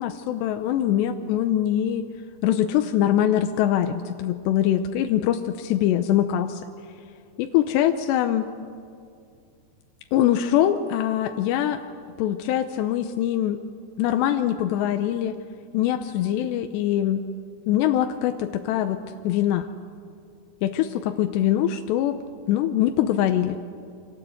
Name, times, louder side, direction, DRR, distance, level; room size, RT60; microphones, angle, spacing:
voice 1, 0.0-2.1 2.4-6.6 7.4-8.5 10.1-11.8 12.2-13.6 14.0-15.4 15.7-17.2 17.7-19.7 20.6-22.2 22.5-23.6, left 11 dB, 90° left, 7 dB, 3.1 m, -23 dB
28.5 x 25.5 x 7.9 m, 2.4 s
omnidirectional pair, 4.8 m